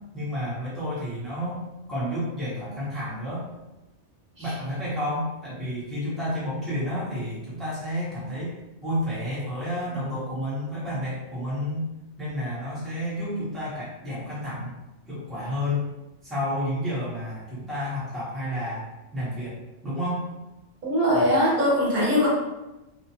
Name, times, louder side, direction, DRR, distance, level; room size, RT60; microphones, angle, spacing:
voice 1, 0.1-1.6 1.9-3.4 4.4-8.5 8.8-11.9 12.2-14.7 15.1-15.9 16.2-18.8 19.1-20.2, equal, ahead, -10 dB, 0.9 m, -30 dB
voice 2, 20.8-22.3, equal, 45° right, -6 dB, 1.1 m, -21 dB
2.4 x 2.3 x 2.8 m, 1.0 s
omnidirectional pair, 1.2 m